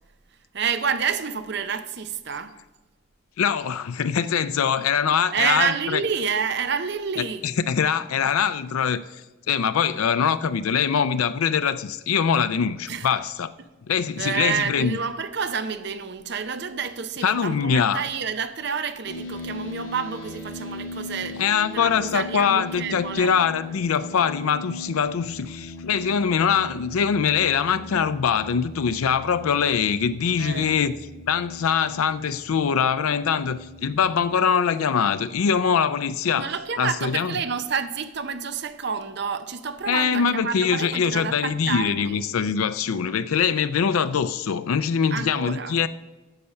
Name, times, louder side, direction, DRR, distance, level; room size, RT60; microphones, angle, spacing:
voice 1, 0.5-2.6 4.8-4.9 5.3-7.5 12.9-13.1 14.2-23.3 30.4-30.8 36.4-42.2 45.1-45.8, right 6 dB, 55° right, 0.7 m, -29 dB
voice 2, 3.4-6.0 7.2-9.0 9.5-13.5 13.9-15.0 17.2-18.0 21.4-30.9 31.3-36.5 36.8-37.3 39.9-45.9, left 7 dB, 90° left, 0.4 m, -23 dB
sound 1, 19.0-34.1, left 2 dB, 60° left, 4.1 m, -39 dB
9.9 x 7.0 x 6.4 m
head